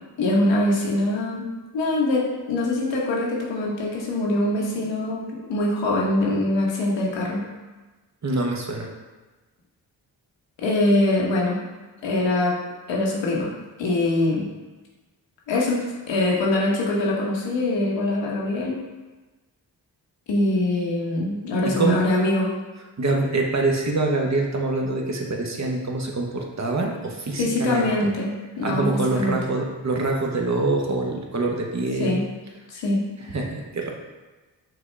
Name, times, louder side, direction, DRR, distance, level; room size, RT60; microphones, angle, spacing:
voice 1, 0.2-1.4 1.7-7.4 10.6-11.6 12.0-12.6 12.9-13.5 13.8-14.5 15.5-18.8 20.3-22.5 27.4-29.4 32.0-32.2 32.7-33.0, left 2 dB, 80° left, -3 dB, 1.0 m, -23 dB
voice 2, 8.2-8.9 21.6-22.0 23.0-27.9 28.6-32.2 33.3-33.9, right 2 dB, 40° right, 1 dB, 0.9 m, -25 dB
5.9 x 2.3 x 3.3 m, 1.2 s
supercardioid pair, 45°, 43 cm